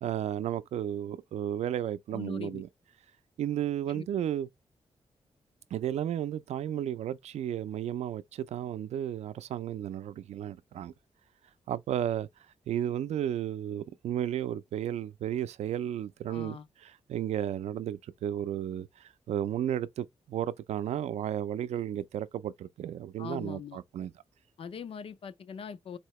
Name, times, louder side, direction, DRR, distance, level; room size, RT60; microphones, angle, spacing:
voice 1, 0.0-2.7 3.4-4.5 5.7-10.9 11.7-12.3 12.7-24.1, right 10 dB, 90° right, 0.4 m, -33 dB
voice 2, 2.1-2.6 3.9-4.1 16.3-16.7 23.2-23.8 24.6-26.0, left 6 dB, 55° left, 0.5 m, -41 dB
4.2 x 2.8 x 3.1 m
wide cardioid pair, 125°, 11 cm